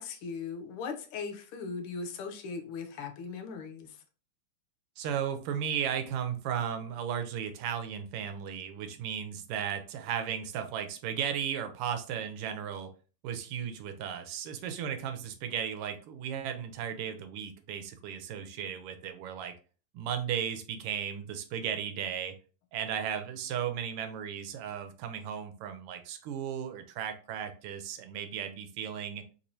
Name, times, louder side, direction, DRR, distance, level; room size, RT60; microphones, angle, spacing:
voice 1, 0.0-3.9, left 5 dB, 85° left, 6 dB, 1.5 m, -39 dB
voice 2, 5.0-12.9 13.2-19.5 19.9-22.3 22.7-29.2, right 8 dB, 90° right, 7 dB, 1.6 m, -35 dB
3.7 x 3.0 x 2.6 m, 0.36 s
omnidirectional pair, 2.4 m